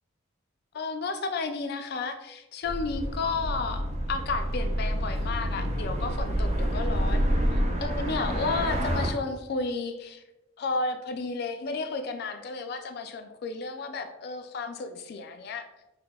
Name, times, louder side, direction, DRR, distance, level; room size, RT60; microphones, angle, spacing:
voice 1, 0.7-10.2 10.6-15.7, left 3 dB, 50° left, 7 dB, 0.3 m, -32 dB
sound 1, 2.6-9.1, equal, 30° right, 0.3 m, -28 dB
5.7 x 2.0 x 2.2 m, 0.96 s
head